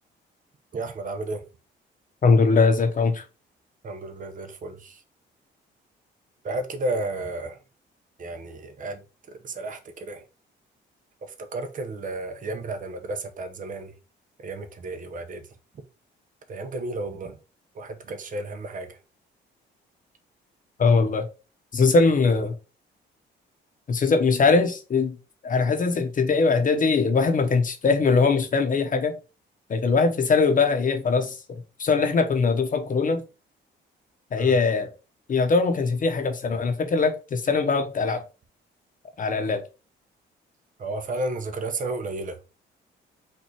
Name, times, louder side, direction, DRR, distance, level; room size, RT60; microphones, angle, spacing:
voice 1, 0.7-1.4 3.8-5.0 6.4-7.6 8.2-9.0 9.3-10.2 11.2-13.9 14.4-15.4 16.5-17.4 17.7-19.0 34.3-34.6 40.8-42.4, right 2 dB, 40° right, 0.9 m, -32 dB
voice 2, 2.2-3.2 20.8-21.2 21.7-22.5 23.9-25.2 25.4-29.1 29.7-33.2 34.3-34.9 35.3-38.2 39.2-39.6, left 4 dB, 40° left, 1.0 m, -21 dB
4.4 x 2.7 x 4.5 m
cardioid pair, 90°, 20 cm